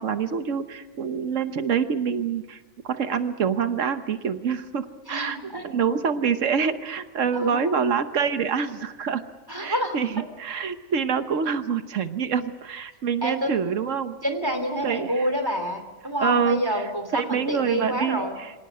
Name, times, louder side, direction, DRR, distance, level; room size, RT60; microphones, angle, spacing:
voice 1, 0.0-5.4 5.6-9.2 9.6-14.2 14.8-15.3 16.2-16.8 17.1-18.5, right 6 dB, 85° right, 9 dB, 1.4 m, -26 dB
voice 2, 5.1-5.6 7.3-7.7 9.5-10.0 13.2-13.5 14.2-18.4, equal, 15° right, 6 dB, 3.2 m, -28 dB
26.0 x 18.5 x 9.6 m, 1.2 s
omnidirectional pair, 1.3 m